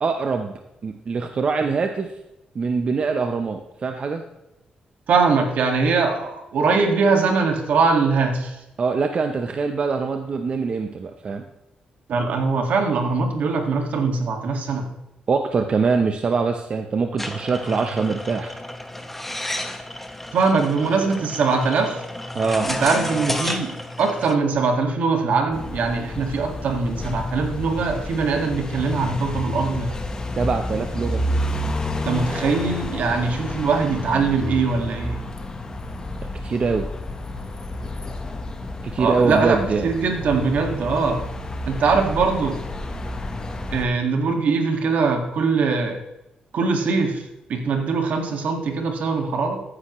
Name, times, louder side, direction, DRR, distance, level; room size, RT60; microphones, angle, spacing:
voice 1, 0.0-2.1 2.5-4.2 8.8-11.4 15.3-18.5 22.3-22.7 30.4-31.3 36.4-36.9 38.9-39.9, right 4 dB, 45° right, 5 dB, 0.8 m, -23 dB
voice 2, 5.1-8.6 12.1-14.9 20.3-22.0 22.7-29.9 32.0-35.2 39.0-41.2 41.7-42.6 43.7-46.0 46.5-47.2 47.5-49.6, right 4 dB, 75° right, 4 dB, 1.9 m, -22 dB
sound 1, 17.2-24.4, left 1 dB, 5° left, 0.9 m, -31 dB
sound 2, 25.5-43.9, left 1 dB, 25° left, 1.2 m, -30 dB
14.5 x 9.8 x 3.1 m, 0.93 s
cardioid pair, 120°, 3 cm